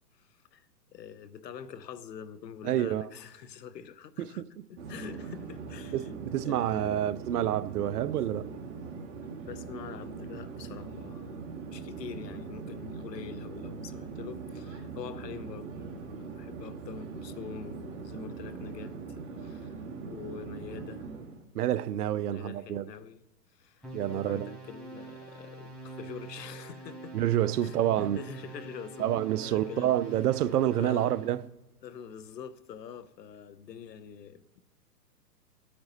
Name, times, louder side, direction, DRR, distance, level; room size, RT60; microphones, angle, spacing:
voice 1, 0.1-4.4 4.7-6.1 6.4-7.1 9.4-19.8 20.0-21.1 22.2-23.2 23.5-27.1 27.6-29.9 30.7-31.2 31.8-34.6, left 7 dB, 80° left, 0.9 m, -45 dB
voice 2, 2.6-3.1 4.4-4.5 5.9-8.5 21.5-22.9 23.9-24.6 27.1-28.2 29.0-31.4, right 12 dB, 70° right, 0.6 m, -28 dB
Conversation / Chatter / Fixed-wing aircraft airplane, 4.8-21.4, right 4 dB, 45° right, 2.3 m, -41 dB
sound 1, 23.8-31.4, right 3 dB, ahead, 5.7 m, -45 dB
18.0 x 8.7 x 4.1 m
hypercardioid pair, 135°, 48 cm